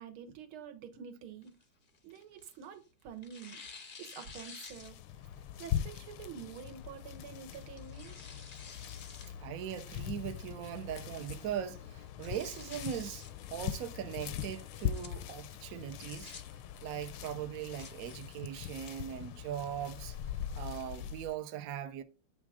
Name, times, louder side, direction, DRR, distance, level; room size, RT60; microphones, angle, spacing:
voice 1, 0.0-1.6 2.0-5.0 5.6-8.3, right 7 dB, 80° right, 2.0 m, -48 dB
Tearing, 1.4-2.8 3.2-5.3 5.7-5.8 6.7-7.0 7.5-9.3 9.7-9.8 10.4-10.8 11.2-11.3 11.5-11.6 12.0-13.3 14.6-15.1 15.9-16.4 17.4-17.9, left 5 dB, 60° left, 0.5 m, -51 dB
sound 1, 4.7-21.4, left 10 dB, 85° left, 1.6 m, -41 dB
voice 2, 9.4-13.2 13.5-16.3 16.8-20.2 20.6-22.0, right 10 dB, 65° right, 0.8 m, -40 dB
8.5 x 3.6 x 6.0 m
omnidirectional pair, 2.3 m